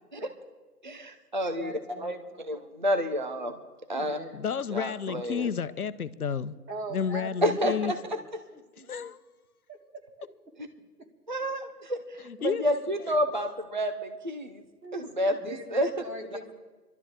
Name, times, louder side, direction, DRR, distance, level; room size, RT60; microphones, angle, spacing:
voice 1, 0.9-1.7 2.0-2.2 2.5-3.5 3.9-4.2 4.7-5.5 7.4-7.7 11.3-14.6 14.9-15.3 15.7-15.9, equal, 30° right, 0.6 m, -29 dB
voice 2, 1.5-2.5 3.9-4.5 6.7-8.2 8.5-9.1 9.7-9.8 11.0-11.1 14.8-16.5, right 1 dB, 85° right, 3.1 m, -42 dB
voice 3, 4.3-6.5 6.9-7.9 8.9-9.2 12.2-12.6, left 7 dB, 65° left, 0.9 m, -31 dB
29.0 x 12.0 x 3.8 m
hypercardioid pair, 170°, 48 cm